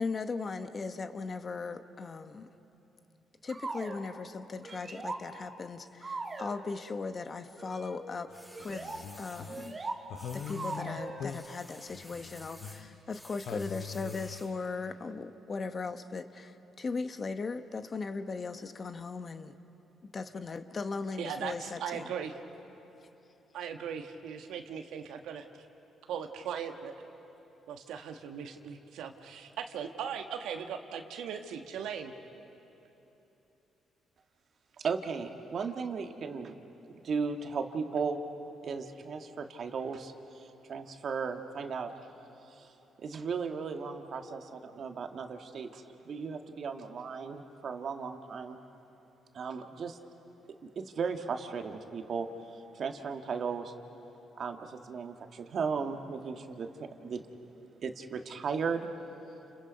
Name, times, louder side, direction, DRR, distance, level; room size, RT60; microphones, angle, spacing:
voice 1, 0.0-2.5 3.4-8.3 8.6-9.8 10.3-19.5 20.1-22.1, left 4 dB, 40° left, 9 dB, 1.1 m, -38 dB
sound 1, 3.5-4.0 4.6-5.2 6.0-6.6 7.6-8.0 8.5-9.0 9.5-10.0 10.5-11.3, right 3 dB, 35° right, 2.3 m, -39 dB
sound 2, 8.3-9.7 10.1-13.2 13.5-14.4, left 7 dB, 70° left, 0.8 m, -43 dB
sound 3, 8.3-9.8 10.1-10.9 11.2-14.6, equal, ahead, 6.2 m, -53 dB
voice 2, 21.2-22.3 23.5-25.4 26.1-26.9 27.7-32.1, right 7 dB, 85° right, 5 dB, 1.6 m, -38 dB
voice 3, 34.8-36.5 36.9-38.2 38.6-41.9 42.5-42.7 43.0-48.6 49.3-50.0 50.6-53.7 54.4-57.2 57.8-58.9, right 5 dB, 55° right, 5 dB, 1.8 m, -36 dB
30.0 x 29.5 x 5.3 m, 3.0 s
cardioid pair, 90°, 0 cm